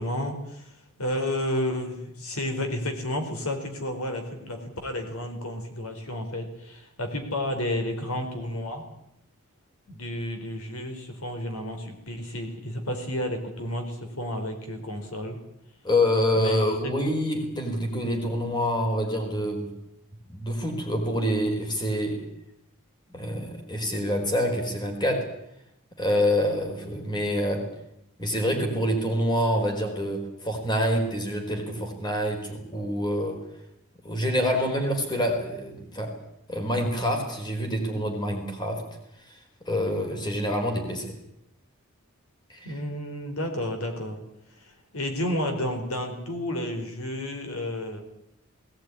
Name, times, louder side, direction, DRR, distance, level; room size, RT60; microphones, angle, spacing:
voice 1, 0.0-8.9 9.9-15.4 16.3-16.7 42.6-44.2 44.6-48.0, left 1 dB, 80° left, 5 dB, 4.6 m, -31 dB
voice 2, 15.8-19.7 20.3-22.2 23.1-25.2 26.0-27.6 28.2-33.4 34.0-36.1 36.5-38.8 39.6-41.2 42.5-42.6, equal, 20° left, 3 dB, 4.6 m, -26 dB
20.5 x 18.5 x 9.9 m, 0.79 s
head